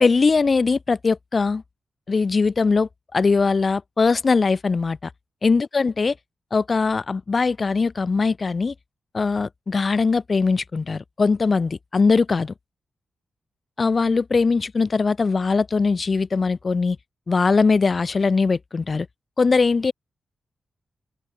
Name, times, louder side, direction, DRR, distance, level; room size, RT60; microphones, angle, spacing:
voice 1, 0.0-1.6 2.1-5.1 5.4-6.1 6.5-8.7 9.1-12.5 13.8-17.0 17.3-19.1 19.4-19.9, left 4 dB, 40° left, 0.8 m, -21 dB
open air
wide cardioid pair, 105°, 0 cm